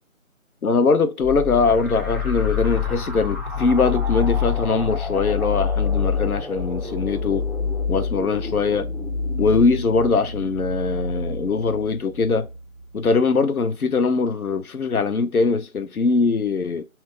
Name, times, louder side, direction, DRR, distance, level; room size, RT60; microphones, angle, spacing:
voice 1, 0.6-7.5 7.9-8.9 9.4-12.5 12.9-16.8, left 4 dB, 90° left, 0.6 m, -21 dB
sound 1, 1.2-12.6, left 5 dB, ahead, 0.5 m, -26 dB
2.8 x 2.4 x 3.5 m
figure-of-eight pair, 175°, 42 cm